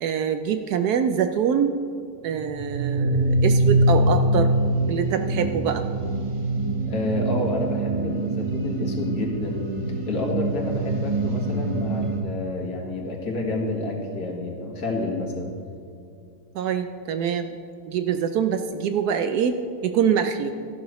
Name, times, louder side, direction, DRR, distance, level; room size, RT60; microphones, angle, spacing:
voice 1, 0.0-1.8 2.2-4.5 4.9-5.9 16.5-17.5 17.9-20.6, right 7 dB, 70° right, 8 dB, 1.0 m, -24 dB
sound 1, 2.3-12.2, right 1 dB, 30° right, 0.6 m, -24 dB
voice 2, 6.8-9.6 10.1-15.6, left 2 dB, 60° left, -1 dB, 2.1 m, -29 dB
14.0 x 12.0 x 3.1 m, 2.5 s
omnidirectional pair, 1.9 m